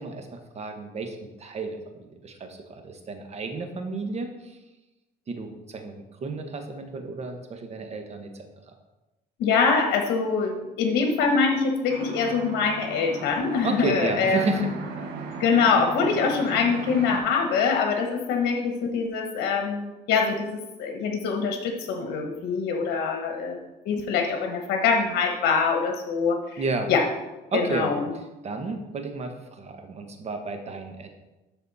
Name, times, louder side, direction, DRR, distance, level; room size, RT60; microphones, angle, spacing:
voice 1, 0.0-4.6 5.3-5.9 6.2-8.5 13.6-14.7 26.6-26.9 27.5-27.9 28.4-31.1, right 3 dB, 40° right, 4 dB, 1.3 m, -32 dB
voice 2, 9.4-14.7 15.4-23.6 23.8-26.6 26.9-27.0 27.5-28.1, left 5 dB, 80° left, 3 dB, 1.1 m, -24 dB
sound 1, 11.9-17.2, right 5 dB, 75° right, 1.3 m, -37 dB
12.5 x 4.2 x 4.1 m, 1.1 s
cardioid pair, 110°, 17 cm